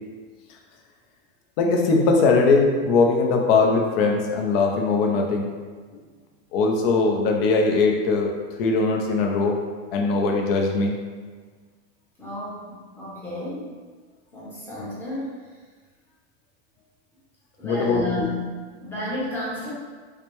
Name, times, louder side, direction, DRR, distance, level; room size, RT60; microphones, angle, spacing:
voice 1, 1.6-5.5 6.5-8.3 8.6-9.6 9.9-10.9 17.6-18.3, left 3 dB, 55° left, 1 dB, 0.7 m, -20 dB
voice 2, 12.2-13.7 14.3-15.4 17.6-18.4 18.8-19.7, left 1 dB, 5° left, -8 dB, 0.7 m, -32 dB
4.9 x 2.1 x 3.0 m, 1.5 s
supercardioid pair, 170°, 34 cm